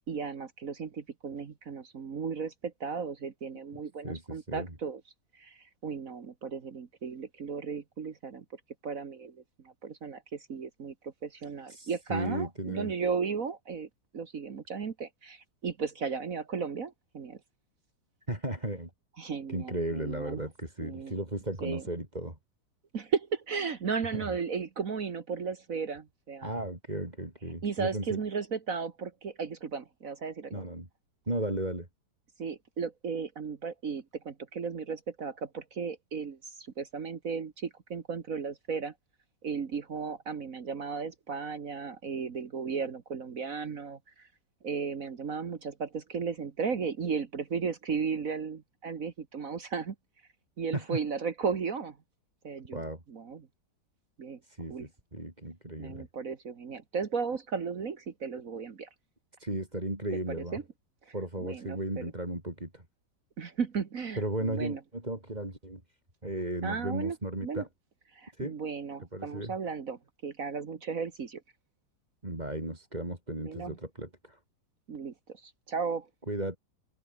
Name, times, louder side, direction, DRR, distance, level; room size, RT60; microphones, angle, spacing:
voice 1, 0.0-5.0 5.3-8.5 8.8-13.9 14.1-17.4 19.2-20.4 20.8-21.2 21.6-21.8 22.9-26.5 27.6-30.6 32.4-38.9 39.4-44.3 44.6-50.0 50.6-52.0 52.4-53.5 54.2-54.4 54.7-54.9 55.8-58.9 60.3-60.6 61.1-62.1 63.4-64.8 66.6-67.2 67.4-67.6 68.1-71.4 73.5-73.8 74.9-76.1, right 5 dB, 55° right, 1.8 m, -35 dB
voice 2, 4.0-4.7 11.7-12.9 18.3-18.9 19.5-22.4 24.1-24.3 26.4-28.2 30.5-30.9 31.3-31.9 50.7-51.0 52.7-53.0 54.4-56.1 59.4-60.6 61.1-62.8 64.2-65.8 66.2-67.7 68.4-68.6 69.1-69.5 72.2-74.4 76.3-76.6, right 1 dB, 25° right, 4.9 m, -35 dB
omnidirectional pair, 1.8 m